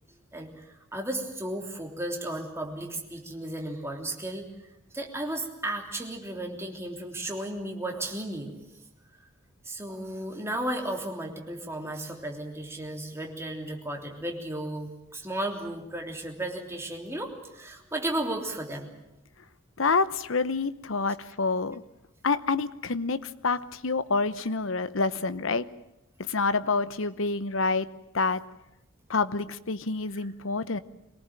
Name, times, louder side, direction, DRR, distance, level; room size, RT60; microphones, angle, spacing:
voice 1, 0.3-4.5 4.9-8.5 9.6-18.9, right 1 dB, 15° right, 1 dB, 3.3 m, -34 dB
voice 2, 19.8-21.8 22.2-25.7 26.2-27.9 28.1-28.4 29.1-30.8, left 4 dB, 70° left, 14 dB, 0.9 m, -27 dB
24.0 x 18.0 x 8.9 m, 0.87 s
head